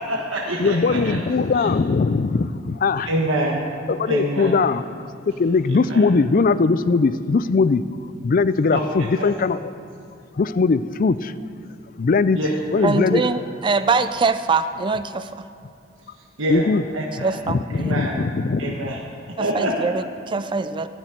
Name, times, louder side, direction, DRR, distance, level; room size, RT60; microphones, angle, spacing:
voice 1, 0.0-1.2 1.5-1.7 3.0-3.7 4.1-4.6 5.7-6.1 8.7-9.3 12.3-12.9 13.2-13.3 16.0-17.4 17.7-18.2 18.6-19.0 19.4-19.9, right 1 dB, 85° right, -1 dB, 1.4 m, -26 dB
voice 2, 0.6-3.1 3.9-5.1 5.4-7.8 8.2-9.6 10.4-11.3 12.0-12.4 12.7-13.2 16.5-16.8 17.5-18.8, left 4 dB, 45° left, 15 dB, 0.4 m, -20 dB
voice 3, 12.8-15.5 17.2-18.0 19.4-20.9, right 4 dB, 25° right, 11 dB, 0.4 m, -23 dB
15.5 x 6.3 x 9.2 m, 2.5 s
head